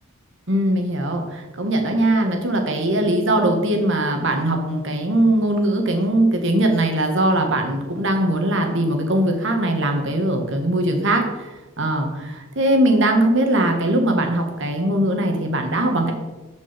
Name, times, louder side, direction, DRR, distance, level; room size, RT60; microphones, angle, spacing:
voice 1, 0.5-11.2 11.8-16.1, right 1 dB, 60° right, 4 dB, 1.8 m, -20 dB
13.5 x 5.3 x 5.3 m, 1.1 s
head